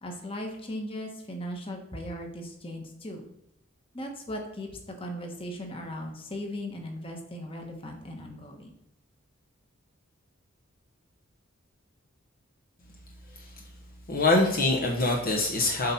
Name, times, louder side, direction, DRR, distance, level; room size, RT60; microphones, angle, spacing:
voice 1, 0.0-3.2 3.9-4.7 5.0-8.7, equal, 25° left, 2 dB, 1.3 m, -38 dB
voice 2, 14.1-15.9, left 2 dB, 45° left, 0 dB, 1.1 m, -24 dB
8.0 x 4.2 x 5.8 m, 0.84 s
head